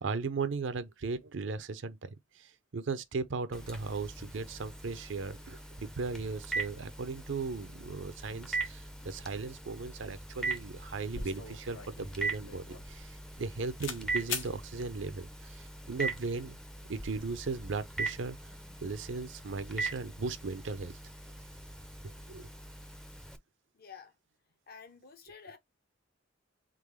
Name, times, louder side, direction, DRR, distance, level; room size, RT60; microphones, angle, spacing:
voice 1, 0.0-2.0 2.4-13.1 13.4-16.6 16.9-18.4 18.8-21.0 22.3-22.5, right 4 dB, 65° right, 0.6 m, -37 dB
Telephone, 3.5-23.4, right 3 dB, 5° left, 0.5 m, -41 dB
sound 1, 11.1-13.5 13.8-14.0 14.3-14.5, left 5 dB, 80° left, 1.0 m, -40 dB
voice 2, 23.7-24.1 24.7-25.6, left 6 dB, 50° left, 0.7 m, -50 dB
3.8 x 3.4 x 3.2 m
head